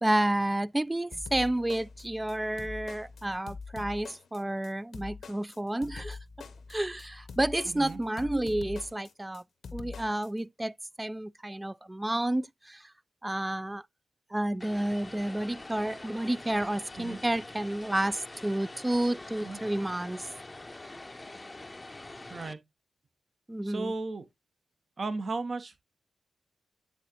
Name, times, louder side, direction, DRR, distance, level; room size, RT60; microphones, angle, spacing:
voice 1, 0.0-6.2 6.7-9.4 9.7-12.9 13.2-13.8 14.3-20.3 23.5-23.9, right 1 dB, 20° right, 0.3 m, -30 dB
sound 1, 1.1-10.3, left 4 dB, 75° left, 0.8 m, -44 dB
voice 2, 7.7-8.0 17.0-17.2 19.4-19.6 22.3-22.6 23.6-24.2 25.0-25.8, right 3 dB, 55° right, 1.0 m, -35 dB
Vehicle, 14.6-22.5, left 2 dB, 25° left, 0.6 m, -45 dB
9.0 x 3.7 x 2.9 m
supercardioid pair, 40°, 0 cm